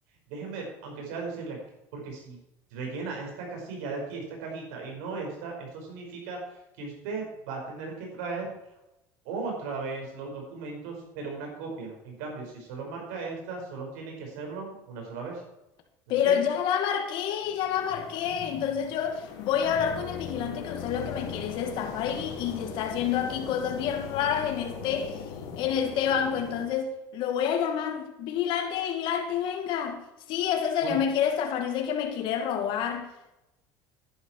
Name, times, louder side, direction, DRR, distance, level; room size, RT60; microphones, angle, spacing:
voice 1, 0.3-1.6 1.9-2.4 2.7-6.4 6.8-8.5 9.3-15.4 16.1-16.4 22.4-22.5 30.8-31.0, right 4 dB, 85° right, 5.2 m, -37 dB
voice 2, 16.1-25.2 25.6-30.0 30.3-33.1, left 8 dB, 65° left, 2.0 m, -28 dB
sound 1, 17.4-26.6, left 6 dB, 80° left, 3.0 m, -40 dB
11.0 x 11.0 x 4.5 m
supercardioid pair, 105°, 9 cm